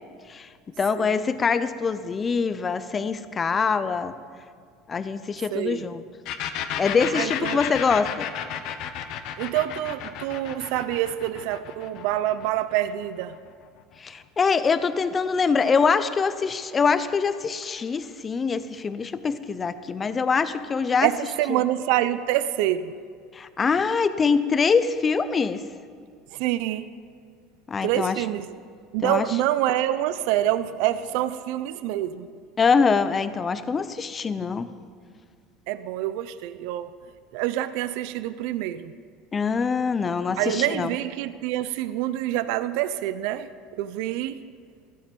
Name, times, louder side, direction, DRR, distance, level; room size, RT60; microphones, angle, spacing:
voice 1, 0.8-4.1 4.9-6.0 6.8-8.3 14.0-21.1 21.5-21.6 23.3-25.6 27.7-28.2 29.0-29.3 32.6-34.7 39.3-40.9, left 5 dB, 25° left, 13 dB, 0.6 m, -24 dB
voice 2, 5.5-5.9 7.1-7.6 9.4-13.3 21.0-22.9 26.3-26.9 27.8-28.6 28.9-32.3 35.7-36.9 37.3-38.9 40.4-43.5 43.8-44.4, right 13 dB, 70° right, 14 dB, 0.6 m, -26 dB
sound 1, 6.2-13.8, left 9 dB, 60° left, 1.1 m, -33 dB
15.0 x 14.5 x 5.3 m, 2.1 s
supercardioid pair, 135°, 0 cm